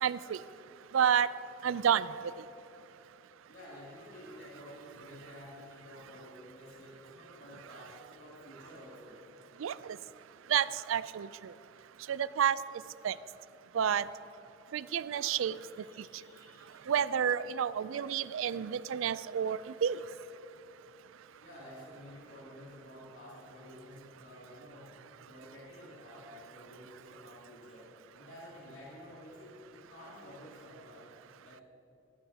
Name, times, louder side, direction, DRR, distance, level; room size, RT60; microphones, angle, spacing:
voice 1, 0.0-0.4 0.9-1.3 1.6-2.3 9.6-10.0 10.5-11.5 12.1-12.6 13.0-13.2 13.7-14.0 14.7-15.6 16.0-16.1 16.9-20.0, right 8 dB, 80° right, 17 dB, 0.4 m, -30 dB
voice 2, 3.5-9.2 15.1-16.8 21.4-24.9 25.3-31.1 31.4-31.6, left 1 dB, 70° left, -7 dB, 2.6 m, -51 dB
17.5 x 13.5 x 2.8 m, 2.9 s
head